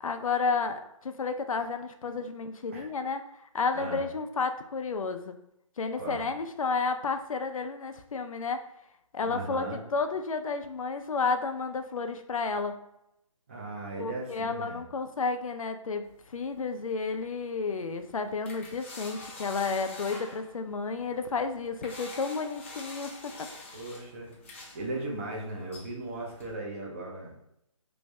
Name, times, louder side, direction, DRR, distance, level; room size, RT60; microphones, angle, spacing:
voice 1, 0.0-3.2 3.5-5.4 5.8-8.6 9.1-9.7 9.9-12.7 14.0-16.1 16.3-23.1, left 4 dB, 80° left, 7 dB, 0.5 m, -31 dB
voice 2, 3.7-4.1 6.0-6.3 9.2-9.8 13.5-14.8 23.7-24.3 24.7-27.3, right 2 dB, 25° right, -2 dB, 0.6 m, -37 dB
sound 1, 16.0-26.5, left 2 dB, 25° left, 0.4 m, -47 dB
3.2 x 2.6 x 3.1 m, 0.79 s
hypercardioid pair, 160°, 17 cm